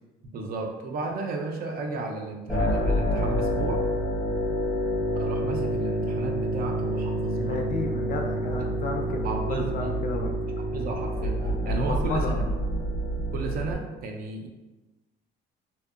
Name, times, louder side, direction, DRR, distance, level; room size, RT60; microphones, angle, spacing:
voice 1, 0.3-3.8 5.2-7.6 9.2-9.9 10.7-11.3 11.6-12.5 13.3-14.5, right 3 dB, 55° right, 3 dB, 0.5 m, -33 dB
sound 1, 2.5-13.7, right 1 dB, 10° left, 0.7 m, -27 dB
voice 2, 7.3-10.3 11.8-12.5, left 3 dB, 50° left, 3 dB, 0.4 m, -33 dB
2.7 x 2.1 x 2.4 m, 1.1 s
cardioid pair, 115°, 18 cm